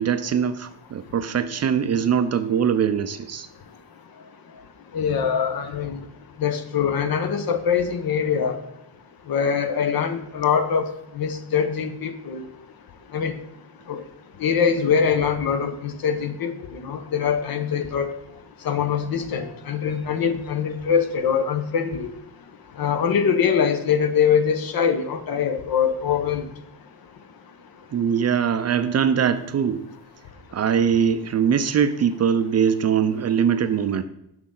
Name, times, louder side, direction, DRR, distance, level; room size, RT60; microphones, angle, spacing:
voice 1, 0.0-3.5 27.9-29.8 30.5-34.0, right 7 dB, 40° right, 10 dB, 0.5 m, -22 dB
voice 2, 4.9-6.0 6.4-8.6 9.3-10.9 11.1-12.5 13.1-13.4 13.9-14.0 14.4-18.1 18.6-22.1 22.8-26.4, left 7 dB, 60° left, 8 dB, 0.9 m, -23 dB
6.2 x 6.1 x 3.8 m, 0.81 s
cardioid pair, 90°, 41 cm